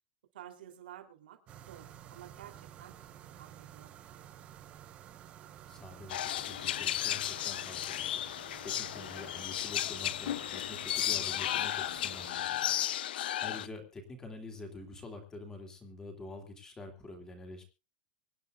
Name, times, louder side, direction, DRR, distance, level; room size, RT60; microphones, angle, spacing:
voice 1, 0.3-1.4 1.7-2.9 3.2-3.9, right 11 dB, 90° right, 5 dB, 3.3 m, -51 dB
sound 1, 1.5-12.3, right 11 dB, 25° right, 1.0 m, -52 dB
voice 2, 5.7-8.3 8.6-17.6, left 2 dB, 10° left, 4 dB, 2.7 m, -47 dB
sound 2, 6.1-13.7, left 12 dB, 90° left, 0.6 m, -34 dB
24.5 x 9.9 x 2.4 m, 0.30 s
supercardioid pair, 170°, 5 cm